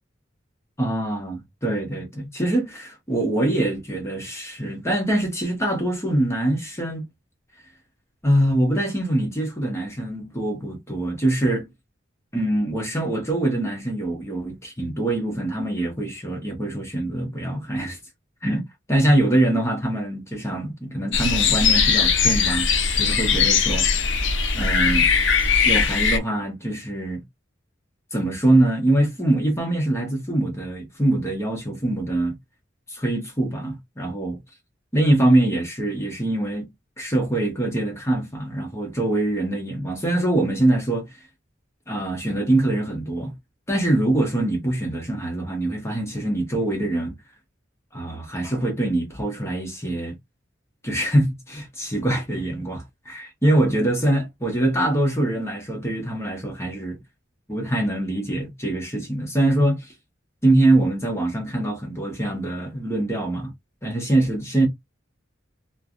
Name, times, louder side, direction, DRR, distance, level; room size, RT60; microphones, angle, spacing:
voice 1, 0.8-7.0 8.2-11.7 12.3-18.0 18.4-18.6 18.9-22.7 23.0-23.9 24.5-25.1 25.6-27.2 28.1-32.4 32.9-34.4 34.9-36.6 37.0-41.1 41.9-43.3 43.7-47.2 47.9-50.1 50.8-57.0 57.5-59.9 60.4-63.5 63.8-64.7, right 1 dB, 15° left, 1.0 m, -23 dB
sound 1, 21.1-26.2, left 5 dB, 70° left, 0.6 m, -20 dB
3.2 x 2.2 x 2.5 m
head